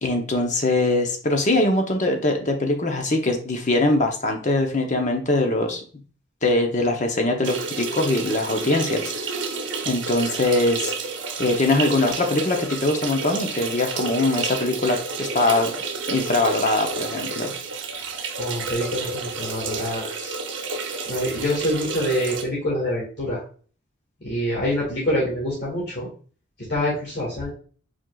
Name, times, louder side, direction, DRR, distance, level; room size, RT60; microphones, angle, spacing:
voice 1, 0.0-5.8 6.4-9.3 9.9-10.9 11.4-15.7 16.1-17.5, left 2 dB, 40° left, 4 dB, 0.7 m, -22 dB
sound 1, 7.4-22.4, right 4 dB, 75° right, 0.8 m, -30 dB
voice 2, 18.0-20.4 21.0-23.4 24.2-26.1 26.7-27.5, equal, 60° left, -7 dB, 2.0 m, -26 dB
4.8 x 4.4 x 2.3 m, 0.41 s
head